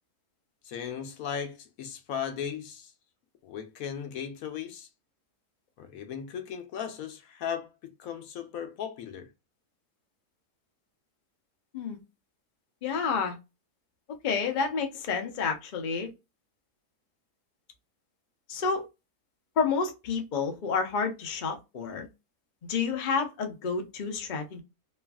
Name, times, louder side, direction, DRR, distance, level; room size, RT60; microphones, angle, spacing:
voice 1, 0.6-2.9 3.4-4.9 5.8-9.3, left 8 dB, 70° left, 1.0 m, -37 dB
voice 2, 12.8-13.4 14.2-16.1 18.5-18.8 19.6-22.1 22.7-24.6, left 5 dB, 50° left, 0.5 m, -29 dB
3.1 x 2.4 x 2.2 m
omnidirectional pair, 1.6 m